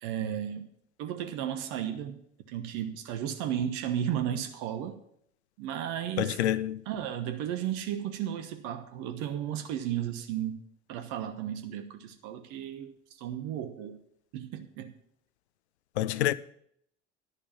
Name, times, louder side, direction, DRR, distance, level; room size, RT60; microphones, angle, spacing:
voice 1, 0.0-0.7 1.0-2.2 2.5-5.0 5.6-6.4 6.8-10.6 10.9-12.9 13.2-14.0 14.3-14.9, right 10 dB, 55° right, 1.2 m, -34 dB
voice 2, 6.2-6.8 16.0-16.3, left 13 dB, 70° left, 0.6 m, -27 dB
11.0 x 6.8 x 7.3 m
figure-of-eight pair, 60°, 35 cm